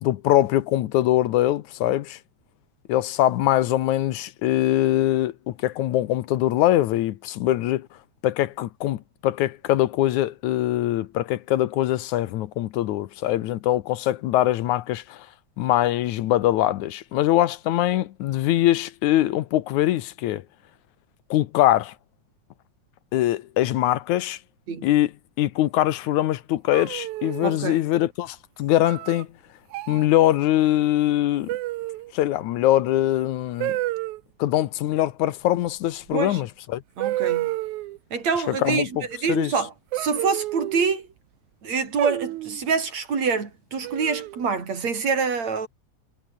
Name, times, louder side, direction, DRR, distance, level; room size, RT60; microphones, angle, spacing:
voice 1, 0.0-2.2 2.9-7.9 8.2-15.3 15.6-20.4 21.3-21.9 23.1-24.4 24.8-25.1 25.4-29.3 29.9-31.5 32.1-33.8 34.4-36.8 38.5-39.0 39.3-39.5, left 14 dB, 80° left, 2.3 m, -22 dB
sound 1, 26.7-27.6 28.8-29.2 29.7-30.1 31.5-32.1 33.6-34.2 36.1-36.2 37.0-38.0 39.9-41.0 42.0-42.6 43.8-44.4, right 17 dB, 85° right, 2.1 m, -29 dB
voice 2, 27.4-27.8 36.1-36.4 37.0-37.6 38.1-41.1 41.6-45.7, right 5 dB, 60° right, 5.2 m, -26 dB
omnidirectional pair, 3.4 m